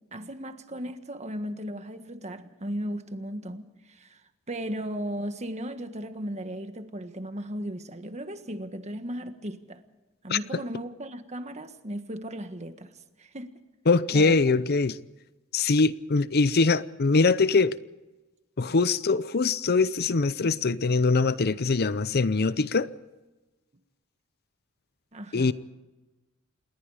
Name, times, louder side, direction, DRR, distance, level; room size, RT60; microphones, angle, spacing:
voice 1, 0.1-4.2 4.5-9.8 10.2-13.5 14.1-14.4 18.6-18.7 25.1-25.5, equal, 35° right, 1.6 m, -36 dB
voice 2, 13.9-15.0 15.5-17.8 18.6-22.9 25.3-25.5, left 4 dB, 50° left, 0.6 m, -23 dB
28.5 x 20.5 x 5.0 m
head